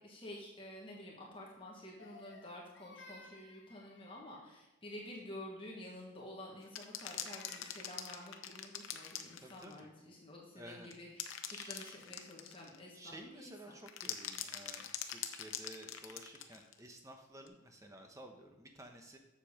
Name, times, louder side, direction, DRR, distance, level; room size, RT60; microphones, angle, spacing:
voice 1, 0.0-13.8, left 1 dB, 25° left, -3 dB, 1.5 m, -50 dB
Crying sobbing, 2.0-4.5 6.7-8.2, left 3 dB, 60° left, 1.0 m, -58 dB
sound 1, 6.7-9.8 10.9-12.8 13.9-16.8 17.5-17.6, left 9 dB, 90° left, 0.8 m, -43 dB
voice 2, 9.4-9.9 10.6-10.9 11.5-12.0 12.9-19.2, right 1 dB, 15° right, 3 dB, 1.0 m, -53 dB
7.4 x 7.1 x 5.3 m, 0.99 s
head